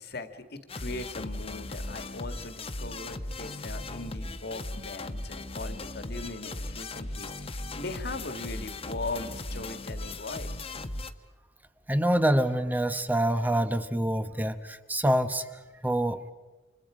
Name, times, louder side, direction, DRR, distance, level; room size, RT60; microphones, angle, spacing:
voice 1, 0.0-10.5, left 2 dB, 60° left, 8 dB, 1.9 m, -39 dB
sound 1, 0.7-11.1, left 2 dB, 35° left, 1.1 m, -37 dB
voice 2, 11.9-15.5 15.8-16.2, right 1 dB, 10° right, 10 dB, 1.0 m, -26 dB
29.5 x 26.5 x 5.0 m, 1.2 s
head